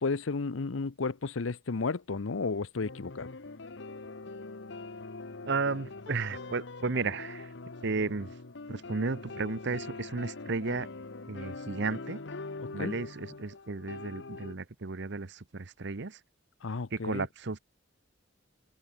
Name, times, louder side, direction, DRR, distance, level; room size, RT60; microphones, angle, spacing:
voice 1, 0.0-3.3 12.6-12.9 16.6-17.3, left 4 dB, 80° left, 0.7 m, -33 dB
sound 1, 2.8-14.5, left 3 dB, 65° left, 1.1 m, -43 dB
voice 2, 5.4-7.5 7.8-8.3 8.7-10.9 11.3-12.2 12.7-16.2 16.9-17.6, right 4 dB, 65° right, 1.0 m, -33 dB
head